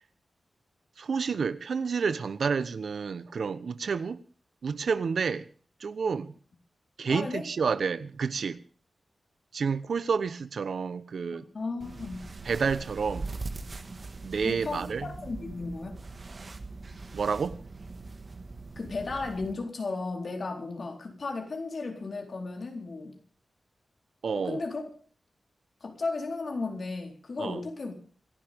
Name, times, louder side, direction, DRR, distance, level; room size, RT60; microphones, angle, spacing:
voice 1, 1.0-4.2 4.6-5.5 5.8-6.3 7.0-8.6 9.5-11.5 12.4-13.3 14.2-15.1 17.1-17.6 24.2-24.6 27.4-27.6, right 5 dB, 75° right, 1.0 m, -29 dB
voice 2, 7.1-7.4 11.5-12.3 14.4-16.0 18.8-23.2 24.3-24.9 25.8-27.9, left 3 dB, 55° left, 4.3 m, -35 dB
sound 1, 11.8-19.5, right 3 dB, 45° right, 1.8 m, -41 dB
26.5 x 12.0 x 3.6 m
wide cardioid pair, 100°, 0 cm